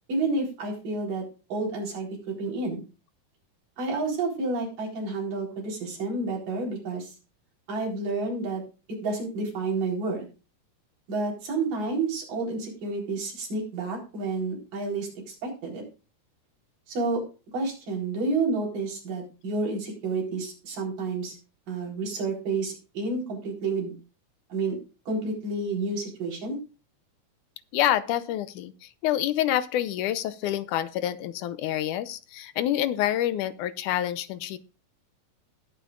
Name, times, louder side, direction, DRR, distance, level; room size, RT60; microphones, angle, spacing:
voice 1, 0.1-1.2 1.5-2.8 3.8-7.1 7.7-8.6 9.0-10.3 11.1-15.8 16.9-17.2 17.5-21.4 21.7-23.9 24.5-24.8 25.1-26.6, right 3 dB, 85° right, -1 dB, 5.8 m, -30 dB
voice 2, 27.7-28.7 29.0-34.6, left 12 dB, 80° left, 13 dB, 2.2 m, -27 dB
20.0 x 8.8 x 2.5 m, 0.32 s
omnidirectional pair, 3.7 m